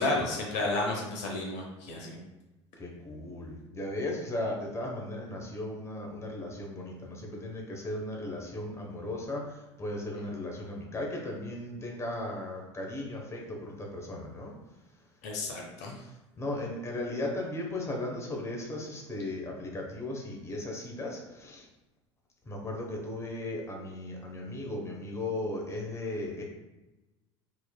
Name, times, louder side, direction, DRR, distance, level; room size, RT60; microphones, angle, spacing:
voice 1, 0.0-2.2 10.1-10.2 15.2-15.9, left 2 dB, 50° left, -1 dB, 0.9 m, -32 dB
voice 2, 2.8-14.5 16.4-21.7 22.4-26.4, left 1 dB, 20° left, -1 dB, 1.0 m, -36 dB
5.8 x 3.0 x 2.2 m, 1.0 s
figure-of-eight pair, 70°, 15 cm